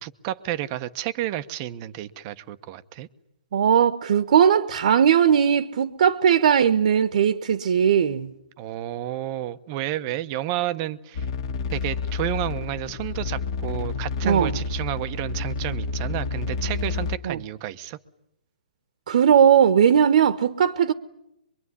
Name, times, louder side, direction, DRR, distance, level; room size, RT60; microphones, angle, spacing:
voice 1, 0.0-3.1 8.6-11.3 11.7-18.0, right 13 dB, 25° right, 1.0 m, -31 dB
voice 2, 3.5-8.3 14.2-14.6 17.2-17.4 19.1-20.9, right 8 dB, 55° right, 1.3 m, -18 dB
sound 1, 11.1-17.2, left 4 dB, 40° left, 2.0 m, -29 dB
24.0 x 23.5 x 9.8 m
hypercardioid pair, 165°, 5 cm